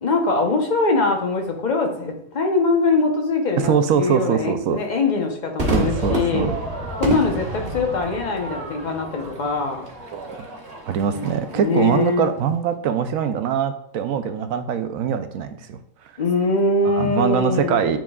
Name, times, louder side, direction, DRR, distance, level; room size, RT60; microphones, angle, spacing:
voice 1, 0.0-6.5 6.9-9.9 11.1-12.3 16.2-18.0, left 3 dB, 35° left, 2 dB, 0.9 m, -22 dB
voice 2, 3.6-4.8 5.7-6.6 10.1-10.3 10.8-15.8 16.8-18.0, right 8 dB, 75° right, 9 dB, 1.0 m, -22 dB
Crowd / Fireworks, 5.6-12.1, right 1 dB, 45° right, 1.6 m, -29 dB
9.3 x 4.4 x 2.4 m, 0.68 s
omnidirectional pair, 1.5 m